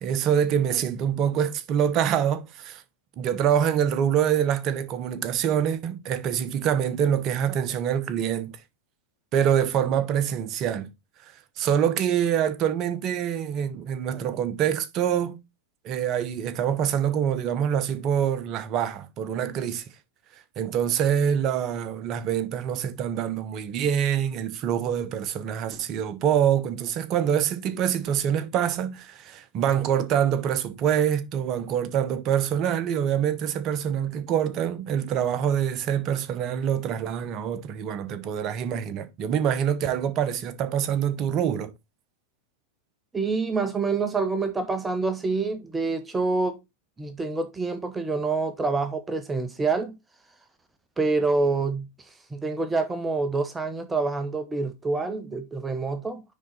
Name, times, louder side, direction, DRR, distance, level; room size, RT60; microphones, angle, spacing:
voice 1, 0.0-2.8 3.2-8.6 9.3-10.9 11.6-15.4 15.8-19.8 20.6-41.7, right 9 dB, 35° right, 1.0 m, -25 dB
voice 2, 43.1-46.6 47.0-50.0 51.0-56.2, right 3 dB, 10° right, 0.9 m, -27 dB
9.8 x 4.0 x 4.2 m
figure-of-eight pair, 90°, 0 cm